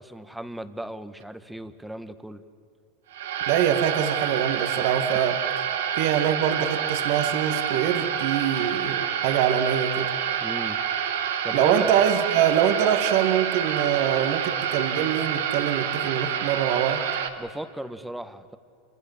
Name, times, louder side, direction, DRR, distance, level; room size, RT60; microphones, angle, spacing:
voice 1, 0.0-2.4 10.4-10.8 11.4-11.9 17.4-18.6, right 1 dB, 5° right, 11 dB, 1.6 m, -35 dB
sound 1, 3.1-17.3, right 8 dB, 80° right, 2.2 m, -28 dB
voice 2, 3.5-5.4 5.9-10.1 11.5-17.0, right 9 dB, 65° right, 7 dB, 2.1 m, -24 dB
26.5 x 24.0 x 7.5 m, 2.4 s
hypercardioid pair, 105°, 0 cm